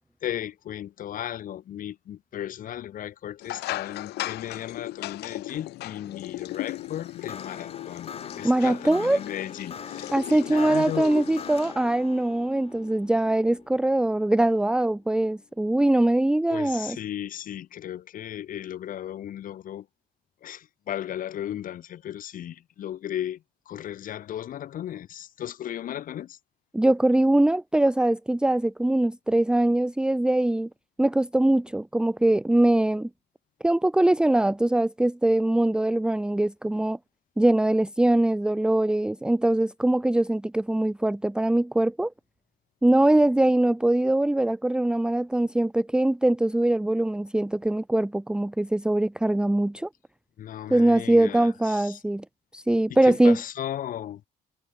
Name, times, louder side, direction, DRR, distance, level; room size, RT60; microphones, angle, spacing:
voice 1, 0.2-11.3 16.5-19.9 20.4-26.4 50.4-52.0 52.9-54.2, left 11 dB, 55° left, 1.2 m, -35 dB
sound 1, 3.4-11.7, left 17 dB, 75° left, 1.2 m, -37 dB
sound 2, 6.4-15.7, left 6 dB, 35° left, 3.2 m, -43 dB
voice 2, 8.4-9.2 10.1-17.0 26.7-30.7 31.0-33.1 33.6-37.0 37.4-42.1 42.8-49.9 50.7-52.2 52.5-53.4, right 1 dB, 5° right, 0.7 m, -22 dB
cardioid pair, 110°, 17 cm